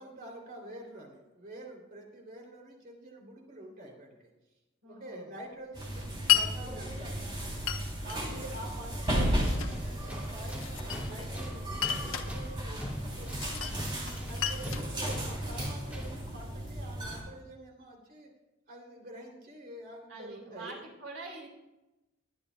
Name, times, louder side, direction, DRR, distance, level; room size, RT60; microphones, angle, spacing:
voice 1, 0.0-4.3 4.8-7.5 8.0-13.7 14.3-18.3 18.7-20.8, right 1 dB, 50° right, -1 dB, 3.1 m, -47 dB
voice 2, 4.8-5.3 20.1-21.5, right 3 dB, 85° right, -1 dB, 3.6 m, -45 dB
sound 1, 5.7-17.2, right 1 dB, 25° right, 3.2 m, -35 dB
Glass, 6.3-6.5 7.7-8.2 9.1-9.8 10.6-11.3 11.7-12.3 13.4-13.8 14.1-15.7, left 11 dB, 80° left, 1.0 m, -31 dB
Tools, 9.7-16.3, equal, 10° right, 2.2 m, -42 dB
21.5 x 10.0 x 2.3 m, 1.0 s
head